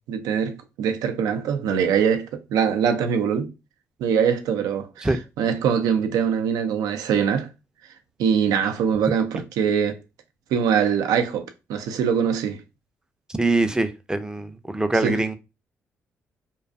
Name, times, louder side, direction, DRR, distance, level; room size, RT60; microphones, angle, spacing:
voice 1, 0.1-3.5 4.0-5.1 5.4-7.5 8.2-10.0 10.5-12.6 15.0-15.2, right 7 dB, 80° right, 0.4 m, -23 dB
voice 2, 13.4-15.4, right 2 dB, 10° right, 0.4 m, -23 dB
2.5 x 2.3 x 2.3 m
hypercardioid pair, 50°, 6 cm